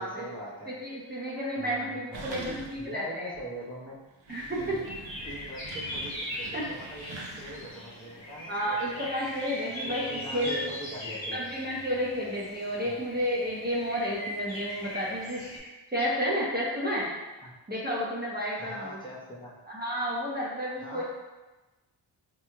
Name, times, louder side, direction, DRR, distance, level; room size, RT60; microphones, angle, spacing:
voice 1, 0.0-1.2 1.6-4.0 4.6-4.9 5.2-9.1 9.8-11.4 12.8-13.0 17.4-17.5 18.6-19.6 20.8-21.0, right 1 dB, 10° left, -7 dB, 0.8 m, -42 dB
voice 2, 0.8-3.3 4.3-4.6 6.5-6.6 8.5-10.0 10.3-10.6 11.3-17.1 17.7-19.0 19.7-21.0, equal, 20° right, -6 dB, 0.8 m, -31 dB
sound 1, 2.1-3.0 3.3-3.4 4.1-7.9, right 2 dB, 75° right, 0.6 m, -44 dB
sound 2, 4.3-15.6, left 1 dB, 80° left, 1.1 m, -40 dB
3.4 x 3.0 x 2.3 m, 1.2 s
cardioid pair, 45°, 46 cm